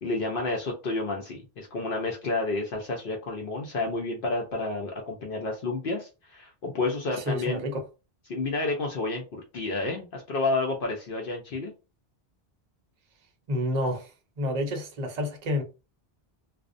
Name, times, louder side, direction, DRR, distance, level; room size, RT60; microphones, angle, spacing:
voice 1, 0.0-7.6 8.3-11.7, left 3 dB, 65° left, 0.8 m, -30 dB
voice 2, 7.2-7.8 13.5-14.1 14.4-15.6, left 1 dB, 45° right, 0.7 m, -29 dB
2.4 x 2.0 x 2.5 m
omnidirectional pair, 1.0 m